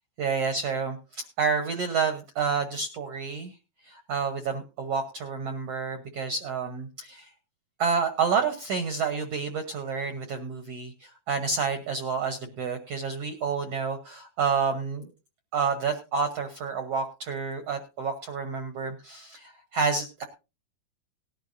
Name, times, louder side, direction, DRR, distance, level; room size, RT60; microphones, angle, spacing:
voice 1, 0.2-3.5 3.9-7.3 7.8-15.1 15.5-20.2, right 5 dB, 70° right, 7 dB, 1.5 m, -29 dB
19.0 x 11.5 x 2.6 m, 0.29 s
omnidirectional pair, 4.3 m